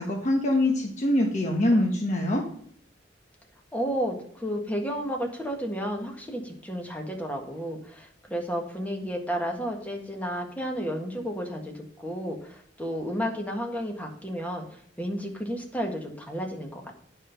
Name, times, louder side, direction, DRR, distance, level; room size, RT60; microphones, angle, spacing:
voice 1, 0.0-2.4, left 1 dB, 40° left, 0 dB, 1.2 m, -24 dB
voice 2, 3.7-17.0, equal, 10° left, 1 dB, 1.6 m, -32 dB
9.7 x 5.5 x 5.7 m, 0.62 s
head